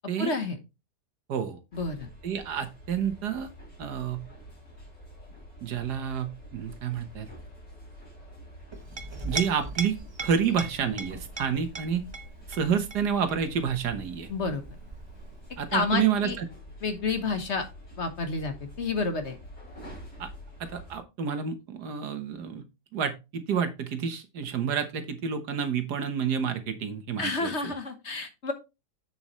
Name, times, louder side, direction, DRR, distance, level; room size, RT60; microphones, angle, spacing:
voice 1, 0.2-0.6 1.7-2.1 14.3-14.6 15.7-16.4 16.8-17.6 18.0-19.4 27.2-28.5, left 3 dB, 45° left, 7 dB, 1.3 m, -29 dB
sound 1, 1.7-21.0, equal, 85° left, 4.5 m, -48 dB
voice 2, 2.2-3.5 3.8-4.3 5.6-7.3 9.2-12.1 12.5-14.3 15.6-16.5 20.2-20.3 20.6-22.6 22.9-27.5, right 7 dB, 70° right, 9 dB, 1.7 m, -29 dB
Chink clink, 8.7-15.8, right 3 dB, 25° right, 0.7 m, -39 dB
7.9 x 6.9 x 3.1 m, 0.25 s
omnidirectional pair, 1.8 m